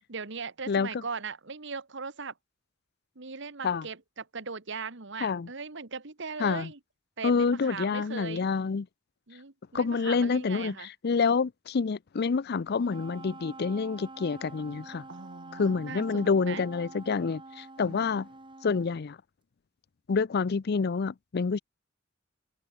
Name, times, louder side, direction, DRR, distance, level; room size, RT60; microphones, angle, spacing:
voice 1, 0.1-2.3 3.1-6.8 7.2-8.4 9.3-10.9 15.1-16.6 17.8-18.1, right 5 dB, 65° right, 1.6 m, -39 dB
voice 2, 0.7-1.0 3.6-3.9 5.2-5.5 6.4-6.7 7.2-8.9 9.7-15.1 15.5-18.3 18.6-19.2 20.1-21.6, left 5 dB, 55° left, 0.5 m, -28 dB
Wind instrument woodwind instrument, 12.8-19.0, right 2 dB, 25° right, 4.3 m, -47 dB
head